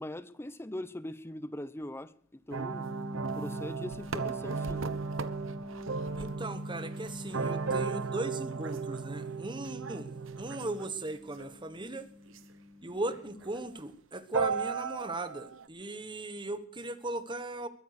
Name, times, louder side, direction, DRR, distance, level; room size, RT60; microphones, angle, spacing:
voice 1, 0.0-2.1 2.5-2.9 3.4-4.8, left 1 dB, 10° left, 0.7 m, -40 dB
sound 1, 2.5-10.9 11.4-11.5 12.4-12.5 13.1-13.2 13.4-13.8 14.3-15.6, right 4 dB, 65° right, 1.1 m, -35 dB
sound 2, 2.6-13.4, left 2 dB, 65° left, 5.1 m, -46 dB
voice 2, 6.2-10.1 10.4-12.1 12.8-17.7, right 2 dB, 20° right, 1.2 m, -38 dB
21.5 x 9.9 x 6.5 m
head